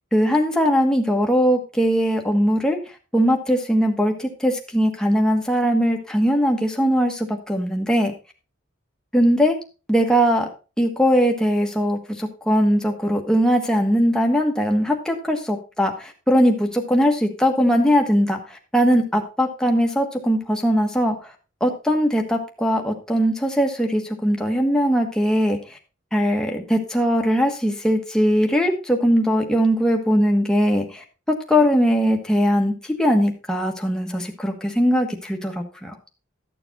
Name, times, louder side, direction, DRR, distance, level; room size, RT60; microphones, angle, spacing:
voice 1, 0.1-2.8 3.1-8.1 9.1-9.6 9.9-10.5 10.8-21.3 21.6-25.8 26.1-35.9, equal, 5° left, 2 dB, 1.4 m, -20 dB
13.0 x 7.0 x 4.1 m, 0.33 s
head